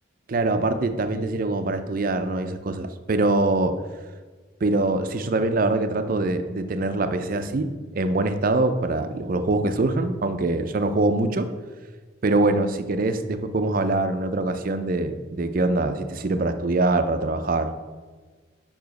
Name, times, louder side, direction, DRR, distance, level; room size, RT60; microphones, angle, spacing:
voice 1, 0.3-3.8 4.6-7.7 7.9-11.5 12.2-17.7, right 2 dB, 45° right, 9 dB, 0.4 m, -23 dB
5.6 x 4.8 x 5.2 m, 1.4 s
head